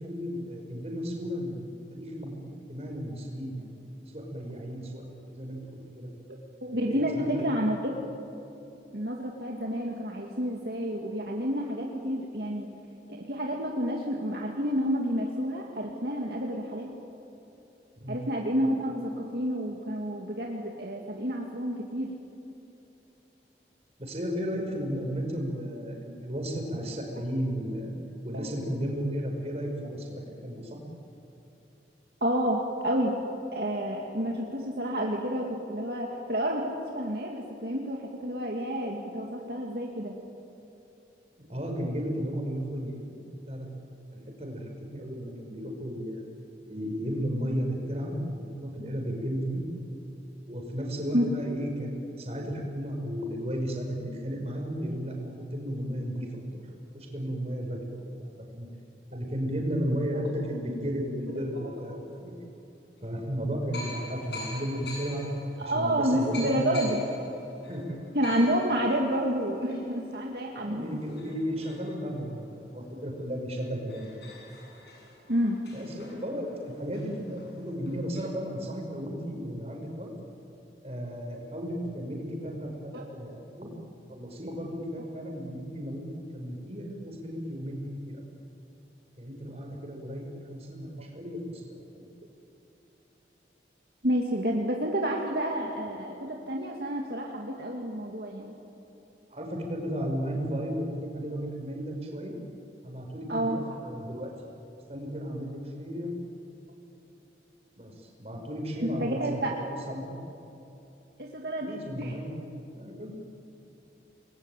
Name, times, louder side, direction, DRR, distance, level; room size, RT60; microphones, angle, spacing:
voice 1, 0.0-3.7 4.1-6.1 6.8-7.3 7.5-7.7 17.9-18.2 24.0-27.9 28.2-30.8 41.5-43.7 44.1-46.2 46.7-49.6 50.5-56.3 56.6-58.7 59.1-62.3 63.0-65.3 65.6-66.8 67.7-68.0 70.6-74.1 75.7-80.1 80.8-83.7 84.1-88.2 89.2-92.1 99.3-102.4 102.8-104.3 104.9-106.1 107.8-109.6 109.9-110.0 111.6-112.4 112.7-113.1, equal, 35° right, 2 dB, 5.3 m, -34 dB
voice 2, 6.6-8.0 8.9-12.7 13.1-16.9 18.1-22.1 32.2-33.1 33.5-40.1 51.1-51.2 60.1-60.2 61.5-61.7 64.4-64.6 65.6-67.0 68.1-70.9 75.3-75.6 82.9-83.0 94.0-98.5 103.3-103.7 108.8-109.5 111.2-112.2, equal, 60° right, -1 dB, 2.4 m, -29 dB
sound 1, 62.0-62.1 63.0-63.1 63.7-72.9 73.3-73.4 73.6-78.2, left 2 dB, 65° left, 7.8 m, -46 dB
29.5 x 21.0 x 9.2 m, 2.9 s
head